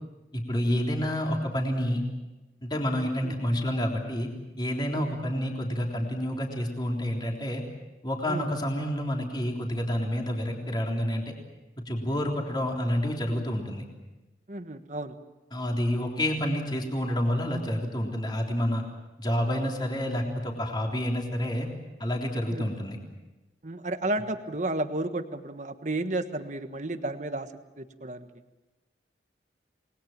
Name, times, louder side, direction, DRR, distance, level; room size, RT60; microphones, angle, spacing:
voice 1, 0.3-2.0 2.6-4.3 4.6-7.6 8.0-11.3 11.9-13.8 15.5-18.8 19.2-21.7 22.0-23.0, equal, 25° left, 0 dB, 3.6 m, -29 dB
voice 2, 14.5-15.1 22.5-22.7 23.6-27.5 27.8-28.3, right 2 dB, 40° right, 8 dB, 1.4 m, -32 dB
28.0 x 20.5 x 7.4 m, 1.1 s
head